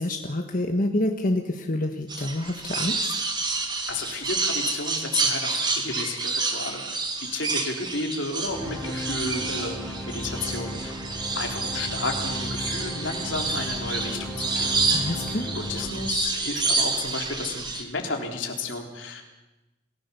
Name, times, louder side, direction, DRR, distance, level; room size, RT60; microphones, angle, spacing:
voice 1, 0.0-3.1 14.9-15.5, left 1 dB, 40° left, 4 dB, 1.5 m, -27 dB
sound 1, 2.1-17.8, right 3 dB, 20° right, 2.5 m, -29 dB
voice 2, 3.9-7.0 7.3-9.8 10.1-10.9 11.3-14.8 15.4-19.2, left 3 dB, 60° left, 2 dB, 3.6 m, -32 dB
sound 2, 8.5-16.9, equal, 5° left, 3.8 m, -35 dB
27.5 x 15.5 x 7.1 m, 1.0 s
head